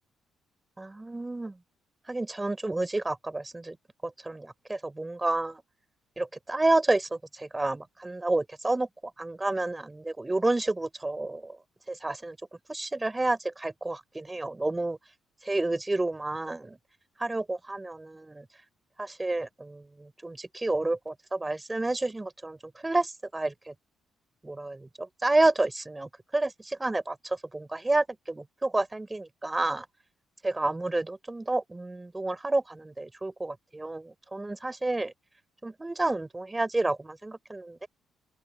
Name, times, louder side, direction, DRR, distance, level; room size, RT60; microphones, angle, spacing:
voice 1, 0.8-1.6 2.1-3.8 4.0-5.6 6.2-8.9 9.2-11.6 11.9-12.4 12.7-15.0 15.4-16.8 17.2-18.5 19.0-22.6 22.8-23.7 24.4-29.9 30.4-35.1 35.6-37.9, right 2 dB, 15° right, 4.8 m, -30 dB
open air
cardioid pair, 90°, 0 cm